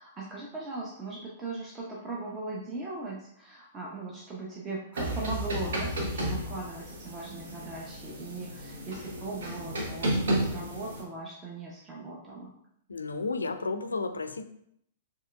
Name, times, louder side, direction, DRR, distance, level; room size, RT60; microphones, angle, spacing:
voice 1, 0.0-12.5, right 2 dB, 20° right, -4 dB, 0.7 m, -39 dB
sound 1, 5.0-11.0, right 1 dB, 70° right, 0.9 m, -33 dB
voice 2, 12.9-14.4, left 3 dB, 85° left, 9 dB, 0.3 m, -32 dB
4.5 x 3.1 x 2.3 m, 0.71 s
figure-of-eight pair, 110°, 0 cm